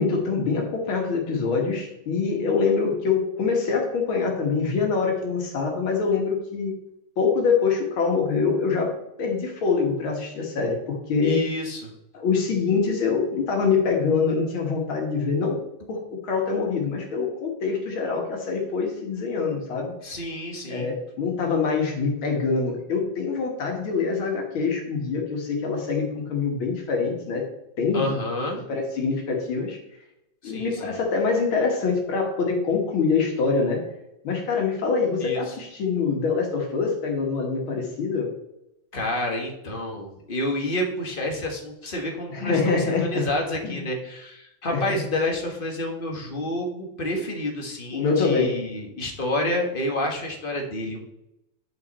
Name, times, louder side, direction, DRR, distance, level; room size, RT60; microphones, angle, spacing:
voice 1, 0.0-6.8 7.2-11.4 12.1-15.6 15.9-19.9 20.7-27.4 27.8-28.1 28.5-29.8 30.4-33.8 34.2-38.3 42.3-43.3 43.6-43.7 44.7-45.0 47.9-48.6, left 5 dB, 85° left, 1 dB, 2.4 m, -24 dB
voice 2, 11.2-11.9 20.0-20.9 27.9-28.6 30.4-30.9 35.2-35.5 38.9-51.0, left 1 dB, 30° left, 1 dB, 1.5 m, -29 dB
10.5 x 5.4 x 4.2 m, 0.86 s
omnidirectional pair, 2.2 m